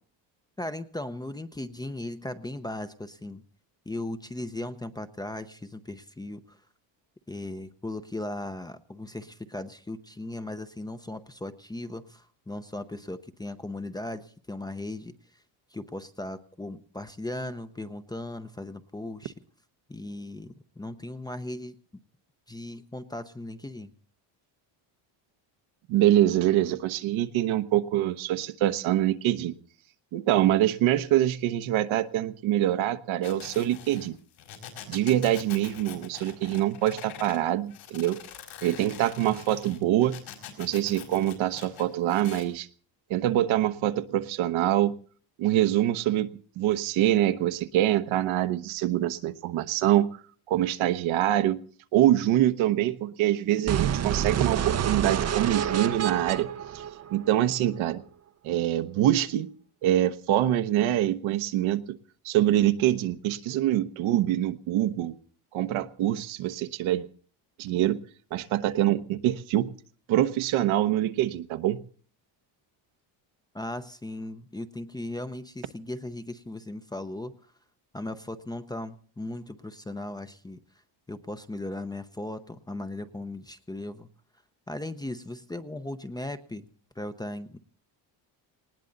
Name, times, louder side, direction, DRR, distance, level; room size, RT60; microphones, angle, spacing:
voice 1, 0.6-3.4 3.9-6.6 7.3-15.4 15.7-19.3 19.9-21.8 22.5-23.9 73.5-77.3 77.9-80.6 81.1-84.1 84.7-86.7 87.0-87.6, left 1 dB, 10° left, 9 dB, 0.7 m, -37 dB
voice 2, 25.9-29.5 30.1-34.1 34.9-38.2 38.6-40.2 40.6-42.7 43.1-44.9 45.4-50.2 50.5-51.6 51.9-56.5 56.7-56.8 57.1-58.0 58.4-59.5 59.8-62.0 62.2-65.2 65.5-67.1 67.6-68.0 68.3-69.7 70.1-71.8, right 13 dB, 70° right, 11 dB, 1.2 m, -25 dB
sound 1, 33.2-37.4 37.7-42.4, left 10 dB, 80° left, 5.0 m, -44 dB
sound 2, 53.7-57.6, right 9 dB, 30° right, 0.7 m, -28 dB
19.5 x 18.5 x 4.0 m, 0.42 s
cardioid pair, 145°, 49 cm